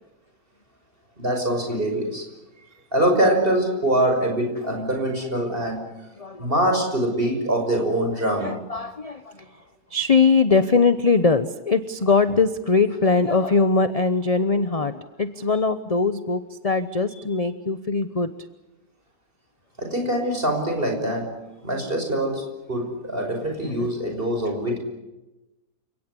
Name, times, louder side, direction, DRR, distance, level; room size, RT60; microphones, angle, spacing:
voice 1, 1.2-2.2 2.9-5.8 6.4-8.5 19.8-22.4 22.7-24.8, right 1 dB, 30° right, 3 dB, 6.1 m, -24 dB
voice 2, 6.2-6.5 8.4-9.3 9.9-18.3 21.1-21.2 23.7-23.9, left 4 dB, 30° left, 12 dB, 0.8 m, -21 dB
29.5 x 18.0 x 9.9 m, 1.0 s
omnidirectional pair, 1.7 m